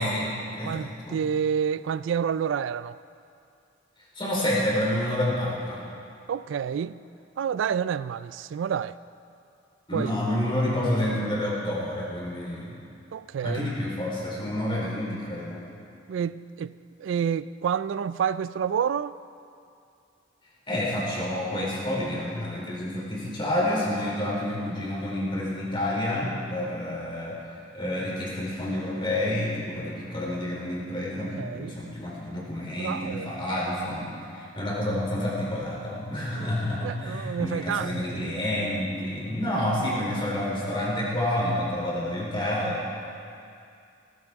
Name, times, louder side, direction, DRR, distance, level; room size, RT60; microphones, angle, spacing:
voice 1, 0.0-1.2 4.1-5.8 9.9-12.8 13.4-15.6 20.7-27.4 27.7-42.8, left 1 dB, 30° left, 3.9 m, -29 dB
voice 2, 0.6-3.0 6.3-7.0 7.4-9.0 9.9-10.1 13.1-13.7 16.1-19.1 31.2-31.9 32.8-33.3 36.4-36.5 36.8-38.4, right 7 dB, 80° right, 0.3 m, -29 dB
17.5 x 15.0 x 3.6 m
head